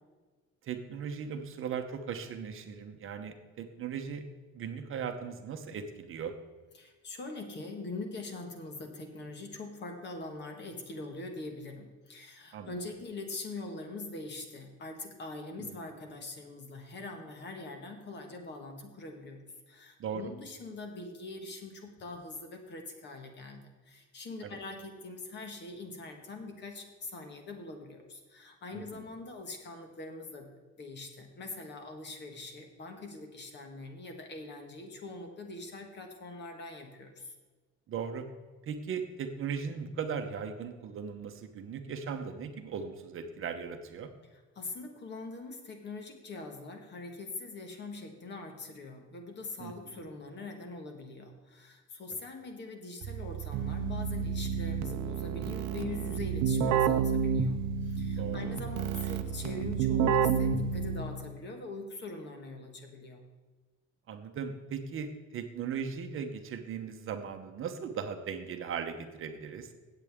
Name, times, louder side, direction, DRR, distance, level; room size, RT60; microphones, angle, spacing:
voice 1, 0.6-4.2 4.5-6.3 12.5-12.7 15.6-15.7 20.0-20.3 24.4-24.5 28.7-29.0 37.9-38.3 38.6-44.1 49.6-49.7 58.2-58.4 64.1-69.7, right 6 dB, 45° right, 6 dB, 1.0 m, -38 dB
voice 2, 6.7-30.5 30.8-37.3 44.3-63.2, left 3 dB, 35° left, 4 dB, 1.7 m, -43 dB
Keyboard (musical), 53.0-61.3, right 7 dB, 70° right, 0.8 m, -30 dB
16.5 x 8.1 x 3.6 m, 1.3 s
cardioid pair, 175°, 30 cm